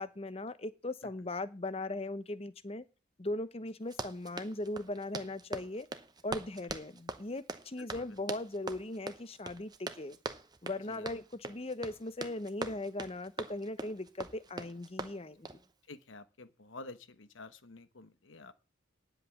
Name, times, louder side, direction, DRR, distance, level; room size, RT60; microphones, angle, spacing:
voice 1, 0.0-2.8 3.2-5.9 6.2-10.2 10.6-15.6, left 2 dB, 30° left, 14 dB, 0.8 m, -39 dB
Run, 3.8-15.7, right 2 dB, 20° right, 0.9 m, -43 dB
voice 2, 7.8-8.2 10.8-11.1 15.9-18.5, left 2 dB, 70° left, 12 dB, 1.1 m, -50 dB
10.0 x 8.0 x 7.1 m, 0.31 s
head